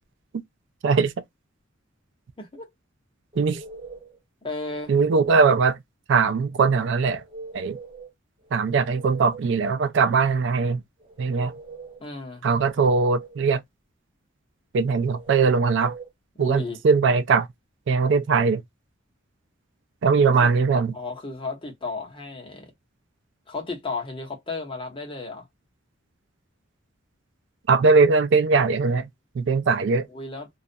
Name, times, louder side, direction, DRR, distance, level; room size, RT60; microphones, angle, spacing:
voice 1, 2.4-2.7 4.4-4.9 12.0-12.4 16.4-16.8 20.4-20.5 20.9-22.7 23.5-25.5 30.1-30.5, left 3 dB, 25° left, 0.9 m, -34 dB
sound 1, 3.3-4.2 4.7-5.5 7.1-8.1 8.5-9.6 11.0-12.0 12.5-13.5 15.1-16.1, right 3 dB, 25° right, 0.7 m, -42 dB
voice 2, 4.9-5.8 6.1-7.2 7.5-7.8 8.5-10.8 11.2-11.5 12.4-13.6 14.7-15.9 16.4-17.5 17.9-18.6 20.0-20.9 27.7-29.1 29.3-30.1, right 4 dB, 65° right, 0.4 m, -20 dB
2.4 x 2.0 x 2.5 m
head